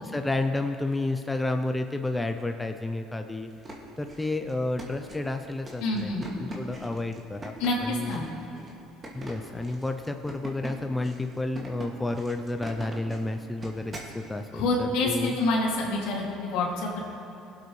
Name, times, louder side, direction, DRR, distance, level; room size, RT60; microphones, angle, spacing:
voice 1, 0.0-3.5 4.0-8.2 9.1-15.4, left 2 dB, 10° left, 6 dB, 0.5 m, -31 dB
sound 1, 3.4-14.2, right 1 dB, 25° right, 2.2 m, -43 dB
voice 2, 5.8-6.2 7.6-8.3 14.5-17.0, left 2 dB, 80° left, -2 dB, 2.4 m, -27 dB
21.0 x 8.1 x 3.2 m, 3.0 s
supercardioid pair, 95°, 0 cm